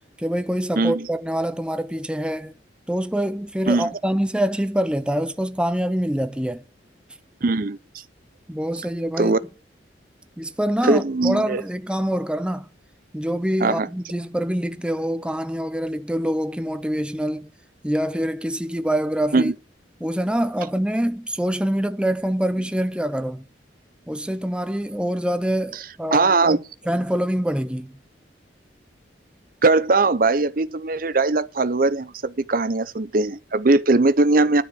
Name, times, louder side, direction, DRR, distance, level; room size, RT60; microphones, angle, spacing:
voice 1, 0.2-2.5 2.9-6.6 8.5-9.3 10.4-12.7 13.1-17.5 17.8-19.5 20.0-23.4 24.1-26.6 26.9-27.9, equal, 5° right, 0.7 m, -25 dB
voice 2, 0.8-1.1 3.7-3.9 7.4-7.8 9.2-9.4 10.8-11.6 13.6-13.9 19.3-19.5 26.1-26.6 29.6-34.6, right 3 dB, 50° right, 0.7 m, -20 dB
13.0 x 4.8 x 7.8 m
head